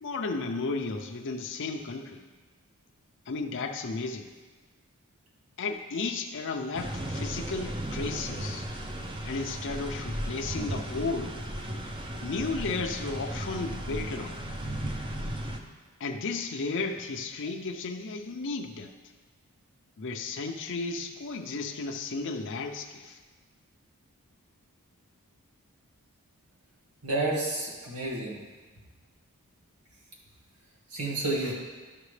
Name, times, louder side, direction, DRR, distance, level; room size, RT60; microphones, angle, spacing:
voice 1, 0.0-2.2 3.3-4.3 5.6-8.7 9.2-11.4 12.2-14.4 16.0-18.9 20.0-23.2, left 3 dB, 55° left, 3 dB, 0.6 m, -34 dB
sound 1, 6.7-15.6, right 1 dB, 25° right, 0.6 m, -35 dB
voice 2, 27.0-28.4 30.9-31.5, right 2 dB, 90° right, -1 dB, 1.7 m, -30 dB
11.5 x 5.9 x 3.3 m, 1.3 s
head